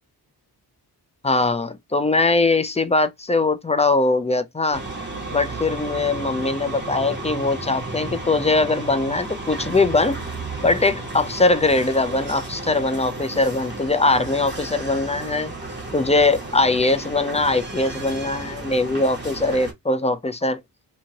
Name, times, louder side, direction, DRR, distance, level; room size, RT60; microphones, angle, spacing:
voice 1, 1.2-4.8 5.3-10.2 10.6-15.5 15.9-20.6, left 3 dB, 20° left, 0.3 m, -21 dB
sound 1, 4.7-19.7, right 2 dB, 25° right, 1.3 m, -33 dB
2.7 x 2.6 x 2.8 m
wide cardioid pair, 105°, 41 cm